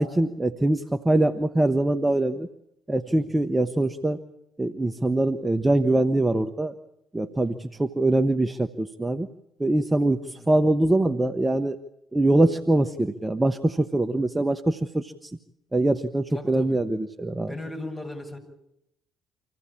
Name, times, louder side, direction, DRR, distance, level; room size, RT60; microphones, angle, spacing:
voice 1, 0.0-2.5 2.9-4.2 4.6-6.7 7.1-9.3 9.6-10.2 10.5-11.8 12.1-15.3 15.7-17.5, right 2 dB, 15° right, 8 dB, 1.2 m, -23 dB
voice 2, 16.3-16.8 17.5-18.4, left 1 dB, 20° left, 3 dB, 7.7 m, -38 dB
26.0 x 15.5 x 8.8 m, 0.78 s
hypercardioid pair, 50°, 0 cm